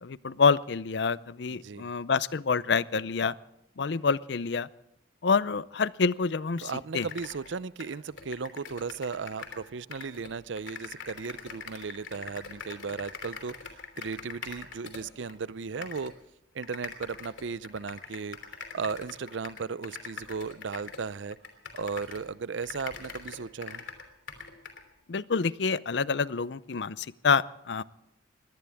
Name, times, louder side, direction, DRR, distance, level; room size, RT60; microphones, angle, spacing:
voice 1, 0.0-3.3 3.8-4.7 5.2-7.1 25.1-27.8, left 5 dB, 65° left, 18 dB, 0.5 m, -27 dB
voice 2, 1.5-1.9 6.6-13.6 14.0-16.1 16.5-18.4 18.7-21.4 21.8-23.8, right 5 dB, 75° right, 18 dB, 0.6 m, -36 dB
sound 1, 6.6-6.7 7.0-9.6 9.9-15.4 15.8-16.1 16.6-22.3 22.6-24.8, left 5 dB, 80° left, 3.1 m, -43 dB
22.5 x 17.5 x 3.5 m, 0.85 s
head